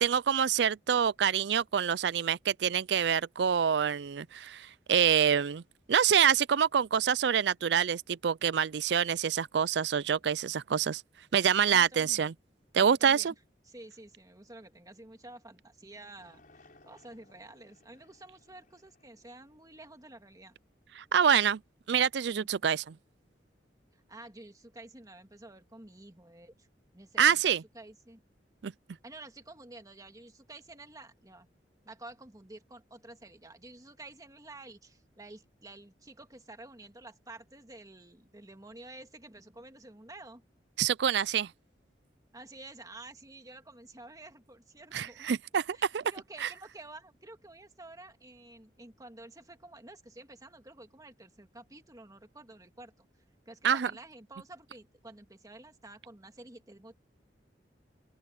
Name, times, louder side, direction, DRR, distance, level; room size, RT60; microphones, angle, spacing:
voice 1, 0.0-5.6 5.9-11.0 11.3-12.3 12.7-13.3 21.0-21.6 21.9-22.9 27.2-27.6 28.6-28.7 40.8-41.5 44.9-46.0 46.4-46.5 53.6-53.9, right 8 dB, 70° right, 0.4 m, -26 dB
voice 2, 11.7-12.2 12.8-13.3 13.7-20.5 22.3-22.5 23.9-26.7 26.9-27.4 27.7-28.2 29.0-31.5 31.8-40.4 42.3-45.3 45.7-53.1 53.5-56.9, right 2 dB, 20° right, 2.0 m, -50 dB
sound 1, 16.2-20.5, left 2 dB, 50° left, 6.3 m, -63 dB
open air
head